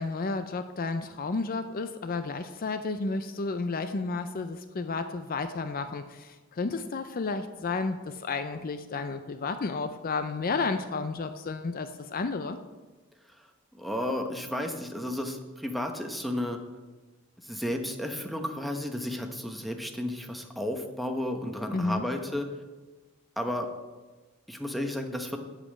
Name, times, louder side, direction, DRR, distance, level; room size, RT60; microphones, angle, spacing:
voice 1, 0.0-12.6 21.7-22.0, left 3 dB, 45° left, 10 dB, 0.5 m, -32 dB
voice 2, 13.7-16.6 17.4-22.5 23.4-23.7 24.5-25.4, left 1 dB, ahead, 4 dB, 1.0 m, -33 dB
8.3 x 7.5 x 8.4 m, 1.3 s
head